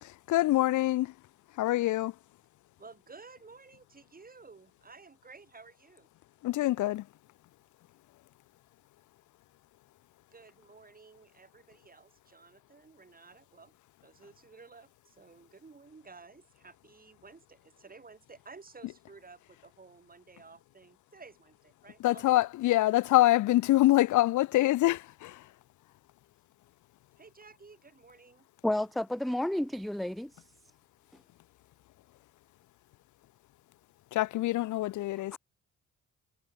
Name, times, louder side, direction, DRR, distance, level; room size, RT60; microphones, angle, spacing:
voice 1, 0.0-1.1 1.5-2.1 6.4-7.1 22.0-25.5 34.1-35.4, left 16 dB, 75° left, 0.6 m, -25 dB
voice 2, 2.8-6.1 10.3-13.7 14.0-22.4 27.2-28.5, right 4 dB, 30° right, 7.8 m, -54 dB
voice 3, 28.6-30.4 35.3-35.4, left 1 dB, ahead, 0.3 m, -31 dB
cardioid pair, 90°, 30 cm